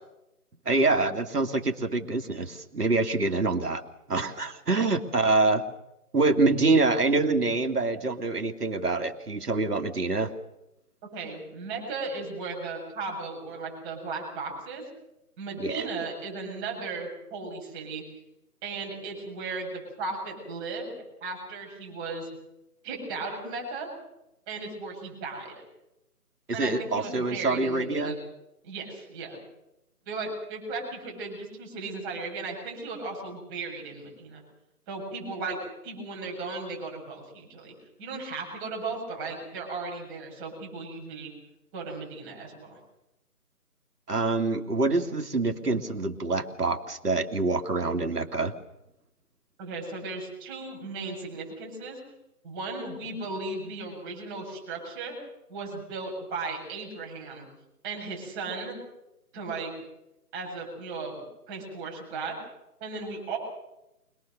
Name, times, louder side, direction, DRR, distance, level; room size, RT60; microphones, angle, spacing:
voice 1, 0.7-3.8 4.1-5.7 6.1-10.3 15.6-15.9 26.5-28.2 44.1-48.5, right 3 dB, 80° right, 6 dB, 2.6 m, -26 dB
voice 2, 11.1-14.8 15.4-18.0 18.6-20.9 21.2-22.3 22.8-23.9 24.5-25.5 26.5-28.1 28.6-29.4 30.1-34.4 34.9-35.6 35.8-37.7 38.0-41.3 41.7-42.8 49.6-52.0 52.4-55.2 55.5-57.4 57.8-58.7 59.3-59.7 60.3-61.1 61.5-62.4 62.8-63.4, right 3 dB, 15° right, 0 dB, 7.8 m, -36 dB
25.0 x 20.5 x 6.7 m, 0.90 s
figure-of-eight pair, 160°, 46 cm